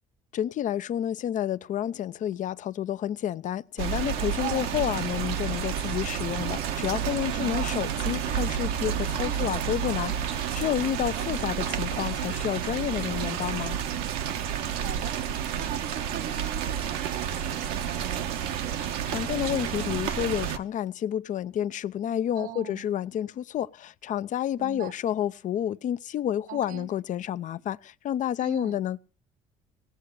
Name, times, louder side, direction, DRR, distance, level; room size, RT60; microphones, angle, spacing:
voice 1, 0.3-13.8 19.1-29.0, left 10 dB, 55° left, 0.7 m, -30 dB
sound 1, 3.8-20.6, right 9 dB, 80° right, 1.3 m, -30 dB
voice 2, 4.4-4.7 7.3-7.7 9.2-9.5 11.2-11.5 14.8-18.7 22.4-22.9 24.6-24.9 26.5-26.9 28.4-28.8, right 11 dB, 65° right, 0.9 m, -40 dB
18.5 x 7.6 x 8.2 m
supercardioid pair, 75°, 15 cm